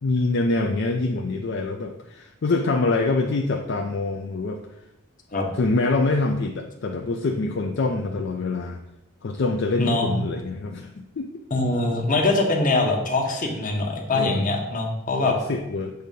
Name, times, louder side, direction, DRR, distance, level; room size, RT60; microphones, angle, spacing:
voice 1, 0.0-4.6 5.6-8.8 9.2-11.3 14.1-14.5 15.5-15.9, left 3 dB, 55° left, 3 dB, 0.4 m, -25 dB
voice 2, 9.8-10.2 11.5-15.4, left 2 dB, 40° left, 2 dB, 1.0 m, -23 dB
7.8 x 2.8 x 5.1 m, 0.90 s
head